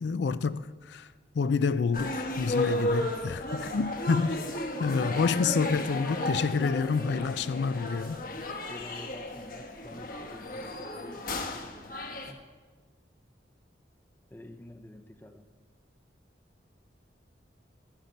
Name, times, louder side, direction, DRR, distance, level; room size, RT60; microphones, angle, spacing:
voice 1, 0.0-4.4 4.8-8.2, left 5 dB, 70° left, 0.4 m, -28 dB
sound 1, 1.9-12.3, left 1 dB, 50° left, 1.0 m, -34 dB
voice 2, 8.7-12.4 14.3-15.5, left 1 dB, 10° left, 0.6 m, -48 dB
11.5 x 10.0 x 5.2 m
head